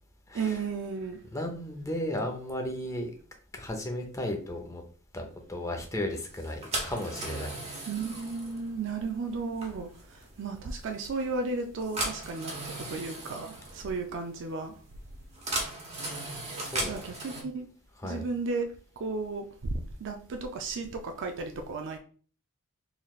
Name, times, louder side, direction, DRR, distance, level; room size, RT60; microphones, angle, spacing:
voice 1, 0.3-1.2 7.9-14.7 16.8-17.7 18.0-18.7 19.0-22.0, right 4 dB, 55° right, 0.4 m, -34 dB
voice 2, 1.3-3.1 3.5-4.8 5.1-7.8 16.6-17.0 18.0-18.2, left 1 dB, 15° left, 0.7 m, -35 dB
sound 1, 6.3-17.4, right 2 dB, 30° right, 1.0 m, -38 dB
3.9 x 3.2 x 2.4 m
head